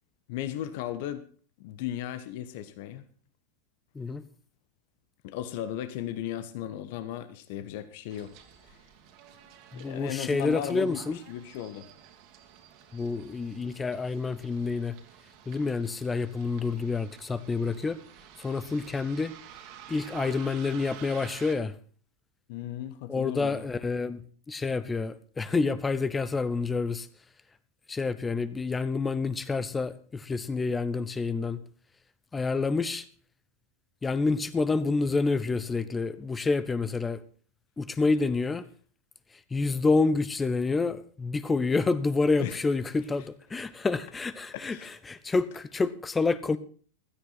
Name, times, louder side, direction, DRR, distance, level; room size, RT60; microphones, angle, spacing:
voice 1, 0.3-1.2 1.6-3.0 5.2-8.3 8.7-8.8 9.7-11.9 22.5-23.7 42.4-42.6 44.5-44.9, left 11 dB, 50° left, 13 dB, 1.3 m, -36 dB
Bus, 8.1-21.5, right 9 dB, 45° right, 2.4 m, -50 dB
voice 2, 9.7-11.2 12.9-14.9 15.5-18.0 18.4-19.3 19.9-21.7 23.1-24.2 24.5-27.1 27.9-31.6 32.3-33.0 34.0-37.2 37.8-38.6 39.5-46.6, left 4 dB, 15° left, 15 dB, 1.0 m, -28 dB
16.0 x 13.5 x 4.2 m, 0.42 s
figure-of-eight pair, 90°, 0 cm